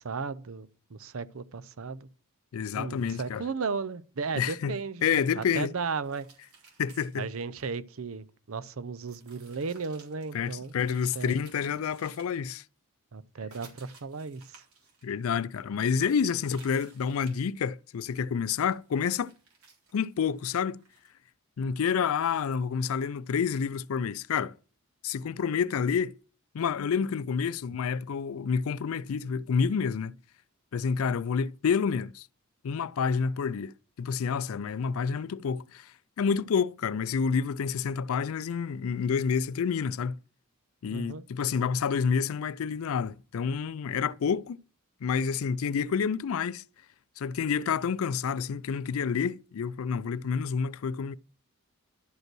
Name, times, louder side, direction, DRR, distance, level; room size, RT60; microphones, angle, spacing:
voice 1, 0.0-2.1 2.7-6.3 7.2-11.4 13.1-14.6 40.9-41.2, right 5 dB, 70° right, 0.6 m, -35 dB
voice 2, 2.5-3.4 4.3-4.7 5.0-5.7 6.8-7.3 10.3-12.6 15.0-19.3 19.9-20.8 21.6-24.6 25.0-26.1 26.5-30.2 30.7-32.3 32.6-40.2 40.8-44.6 45.0-46.6 47.2-51.2, left 6 dB, 75° left, 0.4 m, -29 dB
sound 1, 6.0-7.6 9.0-12.3 12.6-12.7 13.5-15.8 16.4-17.5 17.8-17.9 18.4-21.1, right 4 dB, 85° right, 3.8 m, -57 dB
11.5 x 5.3 x 6.1 m
head